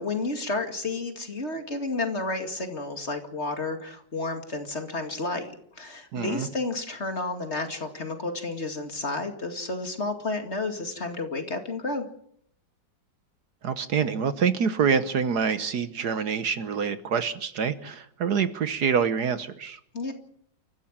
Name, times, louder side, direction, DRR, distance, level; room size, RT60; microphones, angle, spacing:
voice 1, 0.0-12.1 19.9-20.1, left 3 dB, 35° left, 5 dB, 2.4 m, -31 dB
voice 2, 6.1-6.5 13.6-19.8, right 6 dB, 60° right, 12 dB, 1.5 m, -26 dB
29.0 x 14.5 x 7.4 m, 0.71 s
omnidirectional pair, 2.0 m